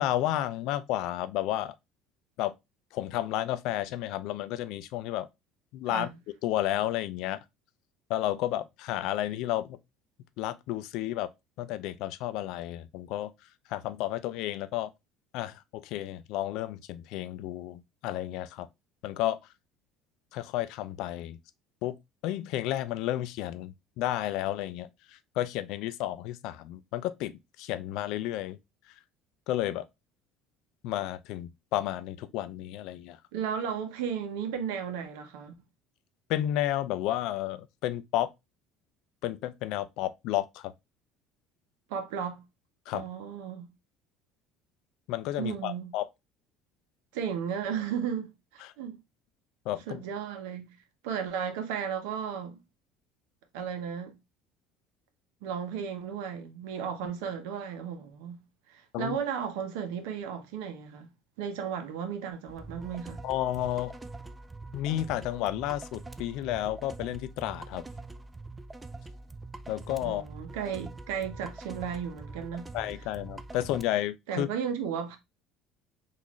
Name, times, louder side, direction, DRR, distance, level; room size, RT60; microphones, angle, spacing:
voice 1, 0.0-1.7 2.4-2.5 2.9-5.3 5.7-6.1 6.4-7.4 8.1-9.8 10.4-11.3 11.6-13.3 13.7-14.9 15.3-18.7 19.0-19.4 20.3-21.4 21.8-22.0 22.2-24.9 25.4-27.3 27.6-28.6 29.5-29.8 30.8-33.2 36.3-38.3 39.2-40.7 42.9-43.1 45.1-46.1 48.6-48.7 49.7-50.0 58.9-59.2 63.2-63.9 64.7-67.8 69.7-70.2 72.7-74.5, left 13 dB, 70° left, 0.4 m, -31 dB
voice 2, 33.3-35.5 41.9-42.4 42.9-43.7 45.4-45.9 47.1-49.0 49.9-50.8 51.0-52.6 53.5-54.2 55.4-58.4 58.7-61.1 61.4-63.2 70.0-72.7 74.3-75.2, right 7 dB, 85° right, 0.8 m, -34 dB
sound 1, 62.5-73.9, right 2 dB, 15° right, 0.3 m, -44 dB
3.9 x 2.5 x 3.0 m
supercardioid pair, 105°, 0 cm